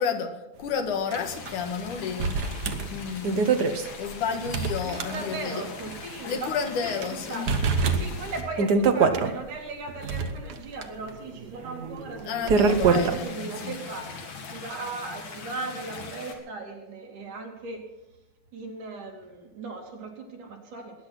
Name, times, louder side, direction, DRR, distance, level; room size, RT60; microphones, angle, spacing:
voice 1, 0.0-2.4 2.9-3.5 4.0-5.6 6.3-7.6 12.2-13.8, left 6 dB, 85° left, 6 dB, 3.2 m, -31 dB
sound 1, 1.1-1.2 1.5-1.6 2.2-5.6 5.9-6.0 6.6-7.1 7.5-9.3 9.9-13.2, right 5 dB, 70° right, 0.9 m, -25 dB
sound 2, 1.2-8.4 12.7-16.4, left 4 dB, 65° left, 3.5 m, -42 dB
voice 2, 4.8-6.5 6.9-7.5 8.0-14.1 14.5-17.8 18.5-20.9, right 3 dB, 85° right, 0 dB, 4.4 m, -37 dB
20.5 x 10.0 x 6.1 m, 0.99 s
omnidirectional pair, 3.5 m